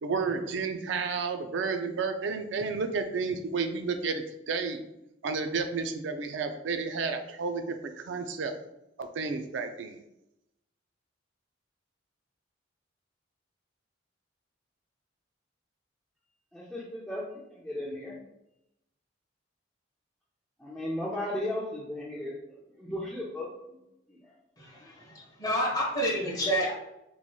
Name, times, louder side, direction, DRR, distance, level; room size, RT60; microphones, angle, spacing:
voice 1, 0.0-4.8 5.2-8.5 9.0-10.0, right 4 dB, 70° right, 6 dB, 0.4 m, -31 dB
voice 2, 16.5-18.2 20.6-23.8 24.1-24.3, left 1 dB, 5° left, -6 dB, 0.4 m, -36 dB
voice 3, 24.6-26.7, equal, 20° left, -3 dB, 0.9 m, -29 dB
4.0 x 3.1 x 2.2 m, 0.85 s
head